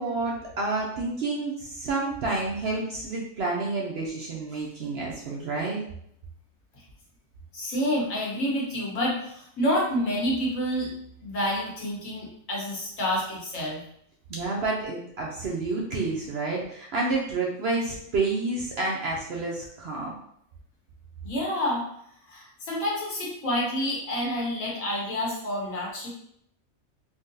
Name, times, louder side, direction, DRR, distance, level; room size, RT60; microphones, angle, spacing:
voice 1, 0.0-5.8 14.3-20.1, right 3 dB, 65° right, -2 dB, 0.7 m, -29 dB
voice 2, 7.5-10.9 11.2-13.8 21.2-21.8 22.3-26.1, equal, 70° left, -4 dB, 1.4 m, -28 dB
3.6 x 2.3 x 2.6 m, 0.71 s
omnidirectional pair, 1.4 m